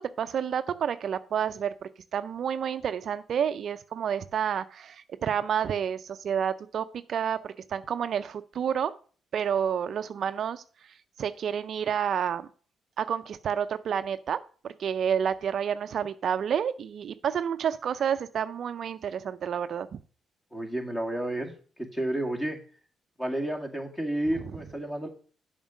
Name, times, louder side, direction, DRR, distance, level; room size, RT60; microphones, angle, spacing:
voice 1, 0.0-8.9 9.3-10.6 11.2-12.5 13.0-14.4 14.6-19.9, right 8 dB, 60° right, 11 dB, 0.5 m, -29 dB
voice 2, 20.5-21.5 21.9-22.6 23.2-25.1, right 1 dB, 15° left, 2 dB, 2.1 m, -31 dB
7.3 x 5.1 x 6.3 m, 0.41 s
cardioid pair, 90°, 0 cm